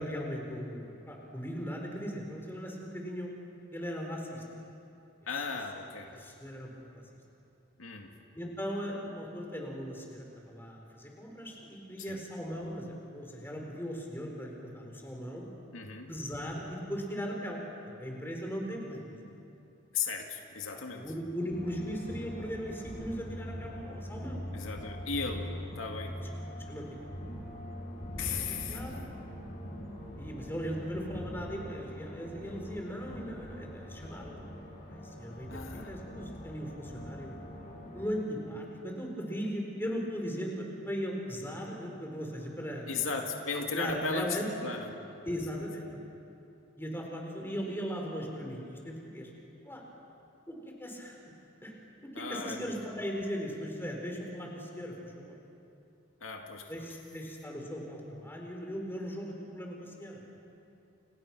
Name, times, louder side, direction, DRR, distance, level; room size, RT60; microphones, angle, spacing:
voice 1, 0.0-3.3 3.7-4.4 6.1-7.0 8.3-15.5 16.1-17.6 18.0-19.2 20.9-24.4 26.7-27.1 28.4-29.0 30.2-34.4 34.9-37.3 37.9-43.0 43.7-44.5 45.2-45.9 46.8-49.3 49.6-49.8 50.5-51.2 51.6-51.7 52.0-55.4 56.7-60.2, equal, 10° left, 0 dB, 4.6 m, -38 dB
voice 2, 5.3-6.1 7.8-8.1 12.0-12.2 15.7-16.1 19.9-21.1 24.5-25.5 25.8-26.2 28.2-28.8 35.5-35.9 42.9-44.9 45.5-45.6 52.2-52.7 56.2-56.9, left 4 dB, 80° left, 2 dB, 2.3 m, -36 dB
sound 1, 21.5-38.0, equal, 45° left, 5.8 m, -43 dB
30.0 x 29.5 x 6.2 m, 2.6 s
head